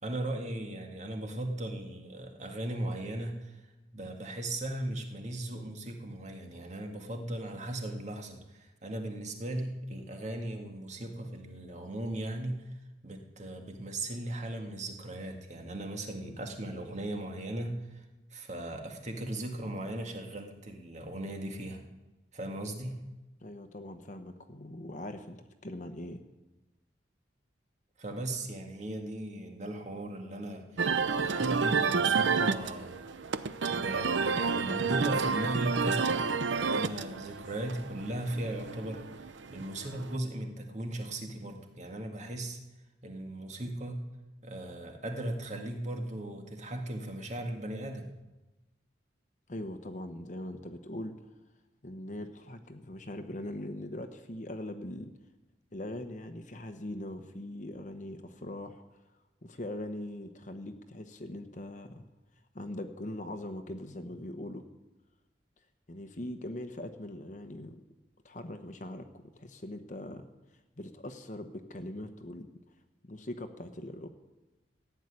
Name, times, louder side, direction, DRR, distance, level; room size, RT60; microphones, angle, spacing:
voice 1, 0.0-3.6 3.9-12.7 13.0-18.0 18.3-21.8 22.3-23.0 28.0-33.0 33.7-36.3 36.5-42.6 43.0-44.0 44.4-48.1, right 1 dB, 40° right, 3 dB, 1.9 m, -37 dB
voice 2, 23.4-26.2 49.5-51.2 51.8-55.1 55.7-58.8 59.4-62.1 62.5-64.6 65.9-67.8 68.2-70.3 70.8-72.5 73.0-74.1, left 1 dB, 40° left, 7 dB, 1.0 m, -41 dB
sound 1, 30.8-40.2, right 5 dB, 75° right, 0.7 m, -30 dB
15.0 x 8.2 x 9.8 m, 1.1 s
head